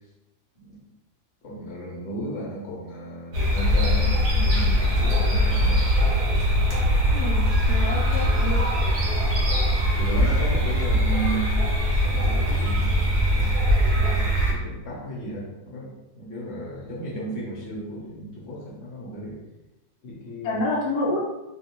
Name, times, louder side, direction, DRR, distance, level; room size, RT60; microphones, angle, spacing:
voice 1, 1.4-5.9 9.9-11.6 12.0-15.9 16.2-19.4 20.0-20.7, right 1 dB, 45° left, -5 dB, 1.1 m, -35 dB
sound 1, 3.3-14.5, equal, 50° right, 1.0 m, -21 dB
voice 2, 7.1-8.6 20.4-21.2, left 2 dB, 80° left, -3 dB, 1.2 m, -28 dB
2.9 x 2.6 x 2.9 m, 1.0 s
omnidirectional pair, 1.7 m